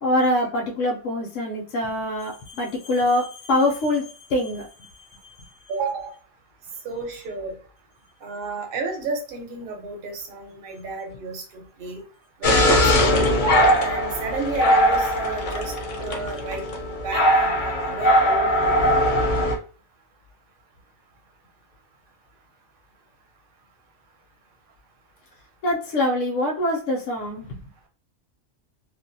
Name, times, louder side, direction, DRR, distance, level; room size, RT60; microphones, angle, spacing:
voice 1, 0.0-4.9 5.4-5.5 25.6-27.6, left 1 dB, 75° left, -2 dB, 0.9 m, -24 dB
voice 2, 5.7-6.2 6.8-7.6 8.2-12.0 12.4-13.3 13.8-15.7 16.0-16.6 17.0-19.3, right 3 dB, 50° right, 3 dB, 0.9 m, -32 dB
sound 1, 12.4-19.6, equal, 55° left, 0.6 m, -20 dB
2.5 x 2.0 x 2.6 m, 0.39 s
omnidirectional pair, 1.3 m